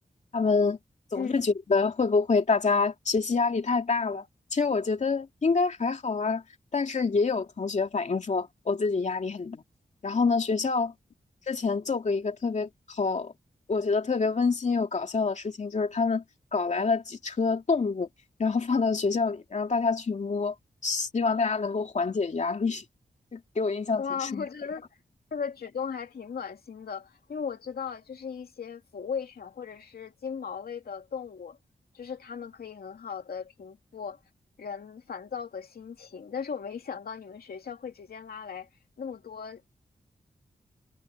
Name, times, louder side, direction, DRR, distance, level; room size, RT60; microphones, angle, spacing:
voice 1, 0.3-0.8 1.1-6.4 6.7-9.6 10.0-10.9 11.5-13.3 13.7-16.2 16.5-18.1 18.4-20.5 20.8-22.8 23.3-24.4, left 4 dB, 50° left, 2.6 m, -27 dB
voice 2, 24.0-24.9 25.3-31.6 31.9-34.2 34.6-38.7 39.0-39.6, left 6 dB, 80° left, 2.6 m, -37 dB
wide cardioid pair, 120°, 16 cm